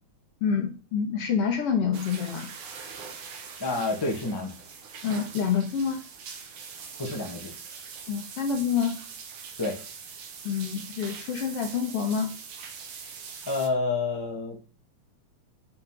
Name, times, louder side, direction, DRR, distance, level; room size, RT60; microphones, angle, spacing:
voice 1, 0.4-2.5 5.0-6.0 8.1-9.0 10.4-12.3, left 7 dB, 60° left, 3 dB, 1.9 m, -27 dB
sound 1, 1.9-13.7, right 6 dB, 55° right, 1.7 m, -42 dB
voice 2, 3.6-4.5 7.0-7.5 9.6-9.8 13.5-14.6, left 3 dB, 15° left, 1 dB, 1.0 m, -28 dB
6.8 x 5.8 x 5.9 m, 0.35 s
omnidirectional pair, 3.4 m